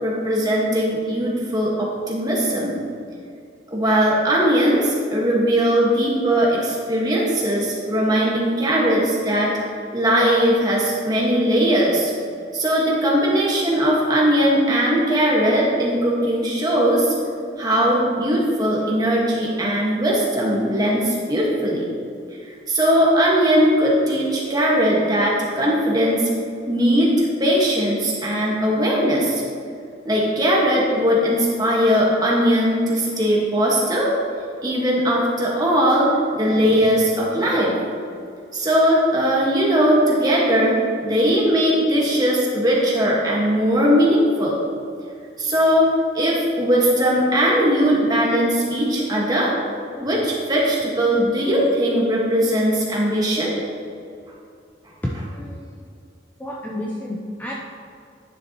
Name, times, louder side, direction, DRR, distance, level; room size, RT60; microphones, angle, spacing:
voice 1, 0.0-2.8 3.7-9.5 9.9-12.1 12.5-17.1 17.6-21.8 22.7-26.3 26.7-29.4 30.0-34.1 34.6-37.7 38.5-44.6 45.4-45.9 46.1-49.5 50.0-53.5, equal, 20° right, -4 dB, 1.5 m, -19 dB
voice 2, 55.0-55.9 56.4-57.5, left 1 dB, 10° left, -4 dB, 0.6 m, -30 dB
9.9 x 6.9 x 3.0 m, 2.3 s
head